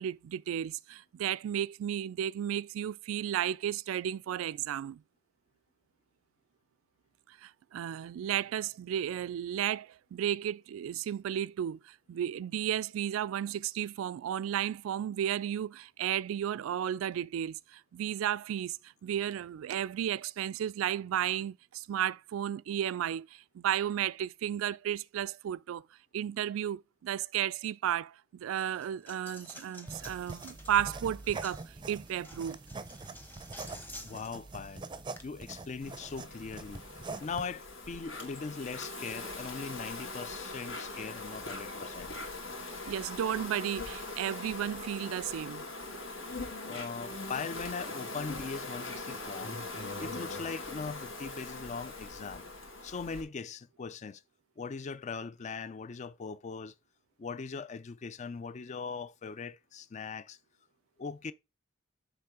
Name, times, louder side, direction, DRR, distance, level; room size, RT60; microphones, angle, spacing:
voice 1, 0.0-5.0 7.4-18.8 19.0-25.8 26.1-32.6 42.9-45.7, right 10 dB, 85° right, 0.3 m, -33 dB
Coin (dropping), 28.5-35.2, left 1 dB, 10° left, 1.0 m, -51 dB
sound 1, 29.9-37.5, right 3 dB, 25° right, 0.5 m, -44 dB
voice 2, 34.0-34.8 35.2-36.8 37.2-42.1 46.7-49.6 50.0-52.4 52.8-54.2 54.6-56.7 57.2-60.4 61.0-61.3, left 5 dB, 35° left, 0.4 m, -40 dB
Insect, 35.8-53.2, left 2 dB, 75° left, 2.5 m, -41 dB
6.9 x 3.7 x 4.8 m
head